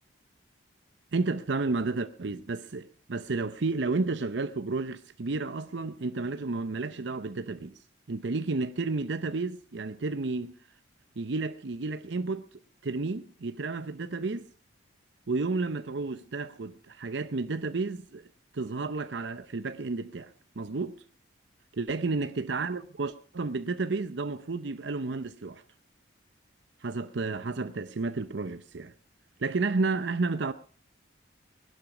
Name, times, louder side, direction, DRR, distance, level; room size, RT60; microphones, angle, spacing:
voice 1, 1.1-7.8 8.1-10.6 11.2-12.5 12.8-14.5 15.3-18.3 18.5-21.0 21.8-25.6 26.8-28.9 29.4-30.5, right 3 dB, 65° right, 0.7 m, -31 dB
18.5 x 12.0 x 5.0 m
head